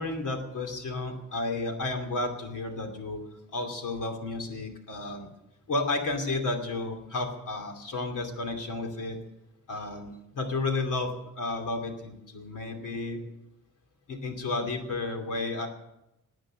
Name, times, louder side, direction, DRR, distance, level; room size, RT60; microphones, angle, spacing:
voice 1, 0.0-3.2 3.5-5.3 5.7-9.2 9.7-13.2 14.1-15.7, left 2 dB, 70° left, 4 dB, 2.8 m, -32 dB
19.0 x 8.9 x 7.5 m, 0.90 s
wide cardioid pair, 160°, 33 cm